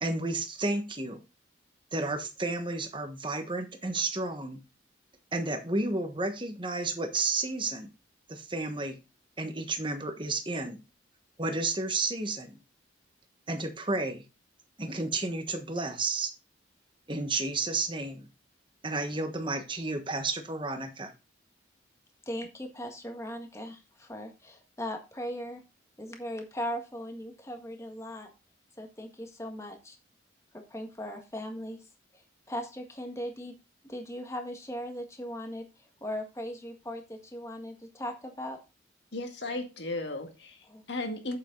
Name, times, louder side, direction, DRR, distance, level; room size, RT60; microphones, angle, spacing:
voice 1, 0.0-1.2 1.9-4.6 5.3-7.9 8.3-9.0 9.4-10.8 11.4-12.6 13.5-14.2 14.8-16.3 17.1-18.3 18.8-21.1, right 3 dB, 25° right, 1.4 m, -32 dB
voice 2, 22.3-25.6 26.0-28.3 28.8-30.0 30.5-31.8 32.1-32.2 32.5-33.5 33.8-35.7 36.0-38.6 40.7-40.8, equal, 15° left, 1.7 m, -38 dB
voice 3, 39.1-40.6 40.9-41.4, left 2 dB, 60° left, 1.9 m, -35 dB
8.3 x 7.5 x 3.9 m
head